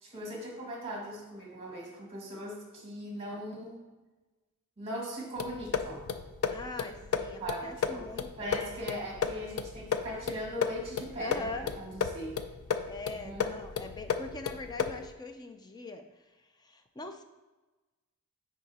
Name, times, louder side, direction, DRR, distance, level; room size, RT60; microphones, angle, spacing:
voice 1, 0.0-3.8 4.8-6.1 7.4-8.1 8.4-12.4 13.2-13.6, equal, 25° right, -2 dB, 1.9 m, -39 dB
sound 1, 5.4-15.1, left 6 dB, 75° left, 0.5 m, -34 dB
voice 2, 6.5-8.5 11.2-11.7 12.9-17.2, left 2 dB, 20° left, 6 dB, 0.5 m, -42 dB
9.9 x 3.9 x 2.9 m, 1.1 s
head